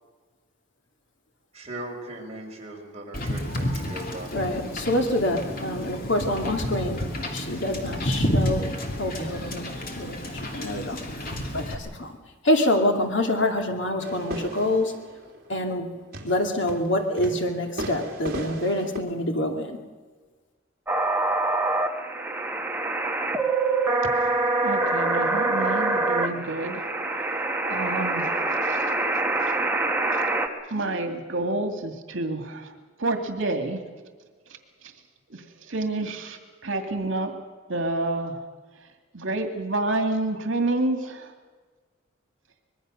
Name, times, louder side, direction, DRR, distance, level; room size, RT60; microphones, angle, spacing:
voice 1, 1.5-4.5, right 1 dB, 35° right, -1 dB, 4.8 m, -39 dB
Wind / Boat Water vehicle, 3.1-11.7, equal, 45° left, 2.9 m, -30 dB
voice 2, 4.3-7.0 7.3-8.7 9.0-9.7 10.0-11.0 11.5-12.2 12.4-14.9 15.5-15.9 16.2-19.8, left 1 dB, 65° left, 4 dB, 2.4 m, -26 dB
sound 1, 14.0-19.0, right 1 dB, 50° right, 3.3 m, -36 dB
sound 2, 20.9-30.5, right 2 dB, 10° right, 1.4 m, -25 dB
voice 3, 24.6-26.8 27.7-28.8 29.4-29.5 30.1-30.2 30.7-32.7 33.0-33.8 35.3-37.3 37.7-38.4 39.1-41.3, right 2 dB, 70° right, 6 dB, 2.3 m, -29 dB
24.5 x 21.0 x 6.5 m, 1.4 s
head